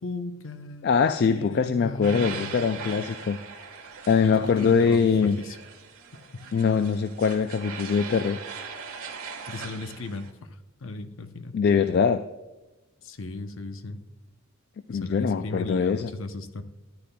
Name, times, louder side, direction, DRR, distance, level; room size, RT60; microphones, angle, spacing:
voice 1, 0.0-3.0 4.2-5.6 6.3-6.5 9.5-10.3 10.8-11.6 13.0-14.0 14.9-16.6, left 2 dB, 65° left, 8 dB, 0.7 m, -37 dB
voice 2, 0.8-3.4 4.1-5.4 6.5-8.4 11.5-12.2 14.9-16.1, left 6 dB, 50° left, 10 dB, 0.3 m, -23 dB
sound 1, 2.0-10.3, right 6 dB, 80° right, 1.4 m, -40 dB
13.5 x 9.7 x 2.2 m, 1.1 s
head